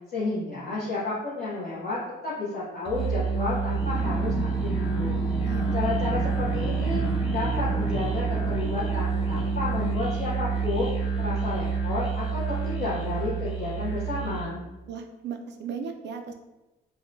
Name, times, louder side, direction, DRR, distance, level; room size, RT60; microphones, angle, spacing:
voice 1, 0.1-2.0 2.2-5.2 5.7-7.0 7.3-10.9 11.2-14.6, left 3 dB, 45° left, -9 dB, 0.8 m, -31 dB
Musical instrument, 2.8-14.6, right 5 dB, 25° left, 1.5 m, -28 dB
sound 1, 3.7-11.8, left 1 dB, 5° left, 0.6 m, -35 dB
voice 2, 5.4-5.7 14.9-16.3, right 6 dB, 60° right, 5 dB, 0.4 m, -36 dB
3.5 x 2.1 x 2.6 m, 1.1 s
cardioid pair, 90°, 20 cm